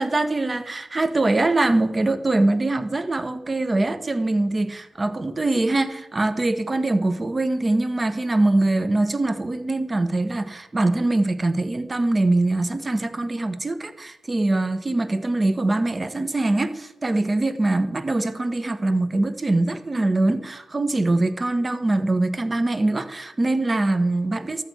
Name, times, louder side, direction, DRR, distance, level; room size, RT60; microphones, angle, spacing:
voice 1, 0.0-24.6, right 2 dB, 30° right, 1.3 m, -23 dB
13.5 x 9.3 x 8.1 m
cardioid pair, 70°, 0 cm